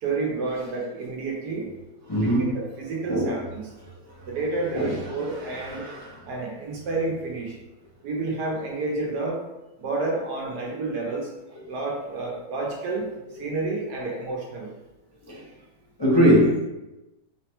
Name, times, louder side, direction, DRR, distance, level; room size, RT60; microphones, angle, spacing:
voice 1, 0.0-1.7 2.2-3.7 4.3-5.8 6.2-7.6 8.0-9.4 9.8-11.3 11.7-14.7, right 3 dB, 85° right, -2 dB, 1.5 m, -30 dB
voice 2, 2.1-2.5 3.1-3.4 4.7-4.9 5.6-6.1 15.3-15.4 16.0-16.6, equal, 35° left, -7 dB, 0.4 m, -21 dB
3.9 x 2.2 x 4.3 m, 0.99 s
omnidirectional pair, 1.7 m